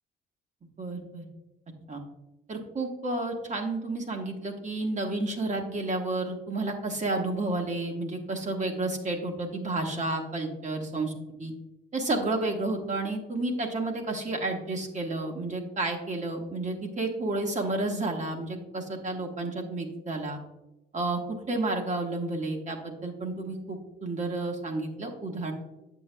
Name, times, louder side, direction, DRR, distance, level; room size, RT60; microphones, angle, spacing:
voice 1, 0.8-1.2 1.9-2.0 2.5-11.1 11.4-11.5 11.9-20.4 20.9-21.2 21.5-25.5, right 2 dB, 35° right, 3 dB, 1.3 m, -31 dB
8.4 x 6.7 x 2.2 m, 0.99 s
cardioid pair, 90°, 20 cm